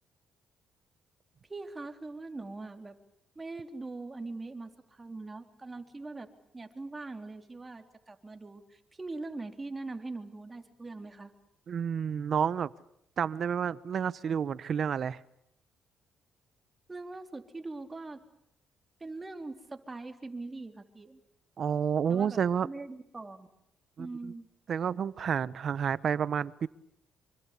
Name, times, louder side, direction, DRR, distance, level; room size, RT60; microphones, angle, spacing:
voice 1, 1.5-3.0 3.4-6.3 6.5-11.3 16.9-18.2 19.0-21.2 22.1-23.5 24.0-24.5, right 3 dB, 20° right, 6 dB, 3.8 m, -42 dB
voice 2, 11.7-12.7 13.2-15.2 21.6-22.7 24.0-24.1 24.7-26.7, right 7 dB, 55° right, 18 dB, 1.1 m, -30 dB
26.5 x 25.0 x 8.5 m, 0.75 s
cardioid pair, 90°, 0 cm